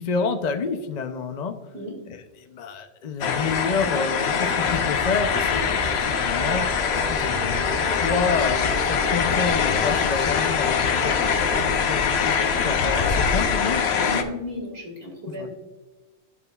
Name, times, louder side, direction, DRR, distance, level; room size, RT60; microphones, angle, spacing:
voice 1, 0.0-1.6 2.1-6.7 7.1-13.8 15.4-15.5, left 5 dB, 50° left, 7 dB, 0.6 m, -29 dB
sound 1, 3.2-14.2, left 6 dB, 75° left, 1.0 m, -23 dB
sound 2, 4.6-11.6, left 1 dB, 30° left, 1.6 m, -33 dB
voice 2, 14.0-15.5, left 1 dB, 65° right, 1 dB, 2.3 m, -34 dB
12.0 x 6.1 x 2.3 m, 1.2 s
omnidirectional pair, 1.1 m